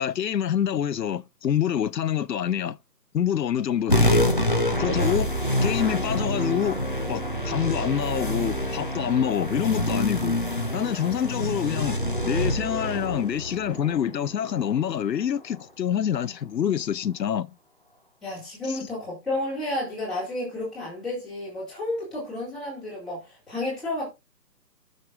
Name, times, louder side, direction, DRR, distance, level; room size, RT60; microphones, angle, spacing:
voice 1, 0.0-2.8 3.1-4.3 4.8-5.3 5.6-6.8 7.1-10.4 10.7-12.0 12.2-17.5 18.7-18.8, left 9 dB, 80° left, 0.7 m, -26 dB
sound 1, 3.9-14.7, equal, 30° left, 0.6 m, -26 dB
voice 2, 18.2-24.1, left 1 dB, ahead, 2.6 m, -31 dB
17.0 x 6.6 x 2.5 m
hypercardioid pair, 175°, 50 cm